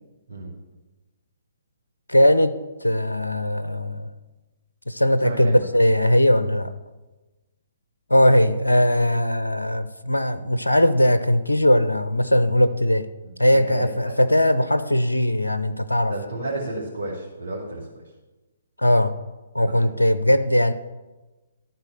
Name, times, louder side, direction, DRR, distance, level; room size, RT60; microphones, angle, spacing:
voice 1, 2.1-2.5 2.8-4.1 4.9-6.7 8.1-13.1 13.4-16.1 18.8-19.2 19.5-20.7, left 1 dB, 85° left, 12 dB, 0.6 m, -19 dB
voice 2, 5.2-5.7 13.2-14.1 16.1-17.9 19.9-20.0, right 2 dB, 80° right, -5 dB, 2.4 m, -32 dB
12.0 x 4.1 x 7.9 m, 1.1 s
figure-of-eight pair, 130°, 0 cm